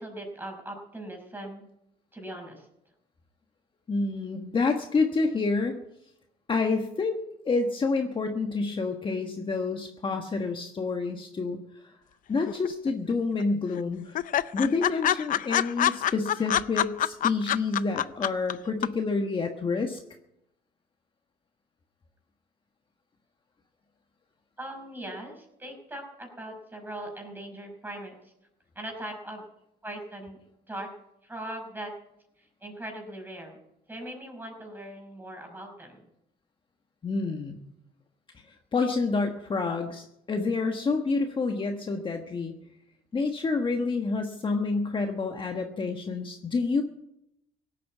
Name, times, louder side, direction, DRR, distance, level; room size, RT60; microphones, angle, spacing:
voice 1, 0.0-1.7 2.1-2.7 24.6-28.3 28.8-29.5 29.8-30.4 30.7-30.9 31.2-31.9 32.4-36.1, right 1 dB, 10° right, 3 dB, 5.3 m, -40 dB
voice 2, 3.9-5.8 6.5-11.9 12.3-14.2 14.5-20.0 37.0-37.6 38.7-42.5 43.1-46.8, left 4 dB, 30° left, 4 dB, 1.4 m, -28 dB
sound 1, 12.5-13.1 13.4-13.5 13.8-13.9 14.2-18.5 18.8-18.9, left 11 dB, 50° left, 0.5 m, -25 dB
17.0 x 8.6 x 8.3 m, 0.83 s
cardioid pair, 110°, 17 cm